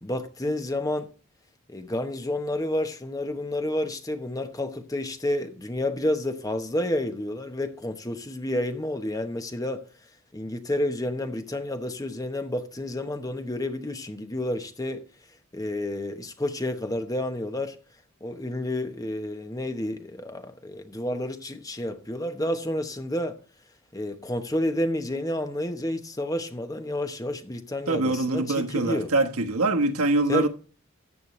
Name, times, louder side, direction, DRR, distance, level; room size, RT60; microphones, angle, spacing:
voice 1, 0.0-1.1 1.7-9.8 10.3-15.0 15.5-17.8 18.2-23.4 23.9-29.1 30.3-30.5, left 1 dB, 15° left, 1.0 m, -30 dB
voice 2, 27.9-30.5, right 2 dB, 85° right, 1.3 m, -24 dB
14.0 x 8.3 x 3.2 m
head